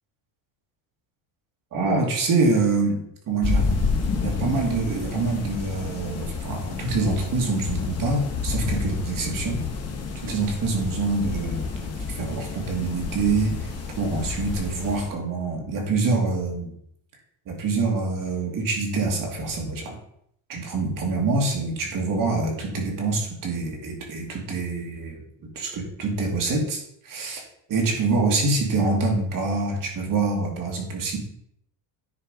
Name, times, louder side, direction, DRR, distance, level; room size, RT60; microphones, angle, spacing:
voice 1, 1.7-3.7 4.2-9.6 10.2-13.6 14.0-16.7 17.5-19.9 20.5-25.2 25.6-27.4 27.7-31.2, right 3 dB, 40° right, 1 dB, 2.4 m, -25 dB
sound 1, 3.4-15.1, left 4 dB, 30° left, 1.6 m, -29 dB
9.9 x 4.5 x 5.2 m, 0.71 s
cardioid pair, 155°, 48 cm